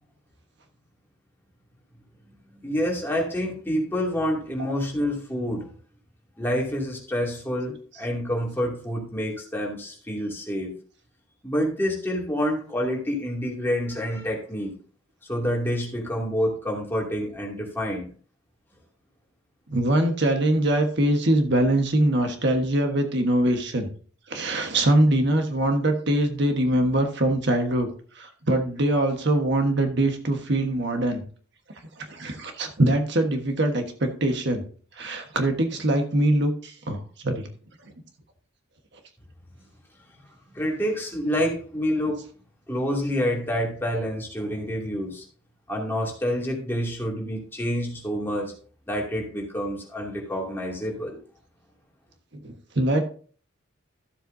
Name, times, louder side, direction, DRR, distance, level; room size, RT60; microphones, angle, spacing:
voice 1, 2.5-5.7 6.4-10.7 11.4-14.7 15.3-18.1 40.5-42.3 42.7-45.2 45.7-48.5 48.9-51.2, equal, 10° left, -2 dB, 2.5 m, -28 dB
voice 2, 19.7-23.9 24.3-27.9 28.1-31.2 32.0-34.7 35.0-37.5 52.4-53.0, right 1 dB, 60° right, 5 dB, 1.4 m, -23 dB
13.5 x 7.7 x 2.7 m, 0.43 s
head